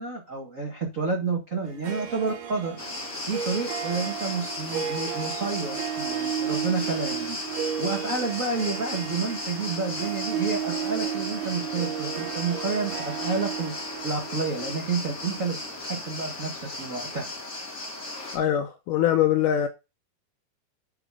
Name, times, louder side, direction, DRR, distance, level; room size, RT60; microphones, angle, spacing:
voice 1, 0.0-2.8 3.2-17.2, right 4 dB, 65° right, 0.7 m, -30 dB
Harp, 1.7-17.0, right 9 dB, 90° right, 3.4 m, -34 dB
sound 1, 2.8-18.4, left 2 dB, 20° left, 2.4 m, -36 dB
voice 2, 18.3-19.7, left 10 dB, 85° left, 1.8 m, -23 dB
9.3 x 4.1 x 4.7 m
omnidirectional pair, 4.4 m